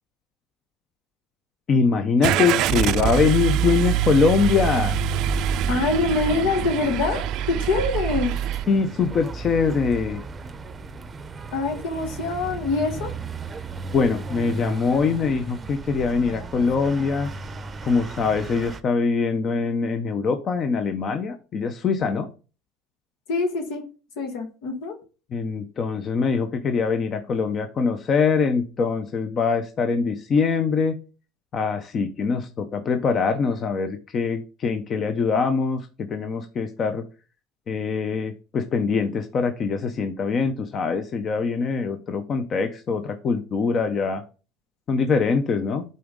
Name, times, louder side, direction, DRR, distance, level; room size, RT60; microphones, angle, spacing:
voice 1, 1.7-5.0 8.7-10.2 13.9-17.3 17.8-22.3 25.3-31.0 31.5-37.0 37.7-44.2 44.9-45.8, left 5 dB, 40° left, 7 dB, 0.7 m, -23 dB
Car / Engine starting, 2.2-8.6, right 11 dB, 60° right, 0.4 m, -24 dB
sound 1, 4.4-18.8, right 3 dB, 25° right, 0.6 m, -34 dB
voice 2, 5.7-8.3 11.5-13.1 23.3-23.8 24.2-25.0, left 3 dB, 80° left, 4 dB, 1.3 m, -25 dB
8.5 x 4.0 x 3.7 m, 0.35 s
supercardioid pair, 110°, 0 cm